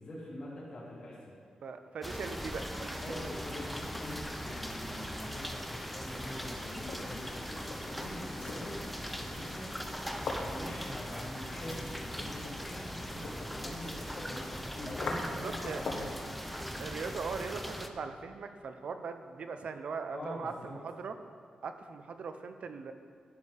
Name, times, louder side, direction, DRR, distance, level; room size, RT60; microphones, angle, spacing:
voice 1, 0.0-1.3 2.9-9.8 10.4-16.2 20.1-20.7, left 1 dB, 40° left, -7 dB, 2.6 m, -44 dB
voice 2, 1.6-3.0 13.1-13.8 15.3-15.8 16.8-21.1 21.6-22.9, right 5 dB, 60° right, 8 dB, 0.7 m, -40 dB
sound 1, 2.0-17.9, equal, ahead, 0.6 m, -40 dB
sound 2, 6.7-16.2, left 3 dB, 70° left, 1.3 m, -44 dB
11.5 x 5.4 x 6.6 m, 2.4 s
wide cardioid pair, 150°, 2 cm